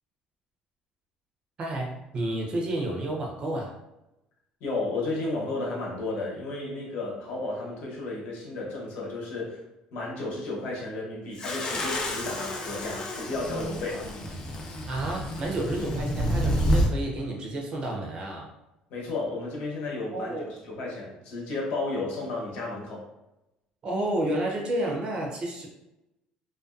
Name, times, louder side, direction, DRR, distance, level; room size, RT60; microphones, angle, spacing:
voice 1, 1.6-3.7 14.9-18.5 20.1-20.4 23.8-25.7, right 1 dB, 35° right, -1 dB, 0.5 m, -30 dB
voice 2, 4.6-9.6 9.9-14.1 18.9-23.1, left 2 dB, 65° left, -3 dB, 0.8 m, -33 dB
sound 1, 11.4-16.9, equal, 30° left, 0.4 m, -29 dB
2.4 x 2.2 x 2.4 m, 0.92 s
cardioid pair, 145°, 3 cm